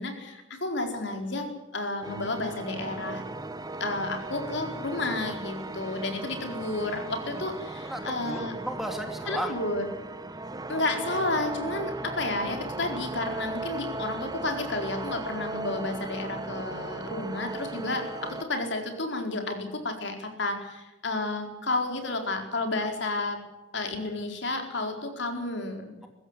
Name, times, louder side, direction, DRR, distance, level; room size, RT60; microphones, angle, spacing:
voice 1, 0.0-3.2 3.8-8.5 9.3-9.8 10.7-23.4 23.7-25.9, left 2 dB, 65° left, 4 dB, 4.5 m, -31 dB
sound 1, 2.0-18.4, right 2 dB, 20° right, 1.2 m, -37 dB
voice 2, 7.8-9.5, equal, ahead, 4 dB, 2.7 m, -34 dB
22.0 x 16.0 x 9.9 m, 1.0 s
head